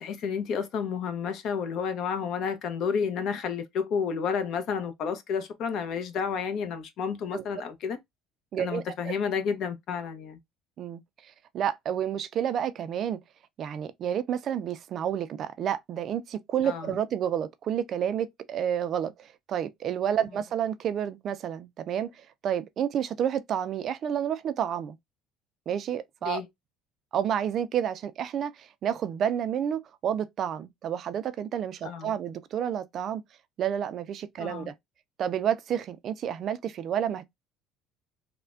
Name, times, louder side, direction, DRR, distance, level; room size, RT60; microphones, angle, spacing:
voice 1, 0.0-8.0 8.6-10.4 16.6-16.9 26.2-26.5 31.8-32.1 34.4-34.7, left 6 dB, 55° left, 0.7 m, -31 dB
voice 2, 8.5-9.1 10.8-13.2 13.6-25.0 25.7-26.4 27.1-33.2 33.6-34.7 35.2-37.3, right 9 dB, 45° right, 0.3 m, -30 dB
3.2 x 2.1 x 2.4 m
cardioid pair, 135°, 0 cm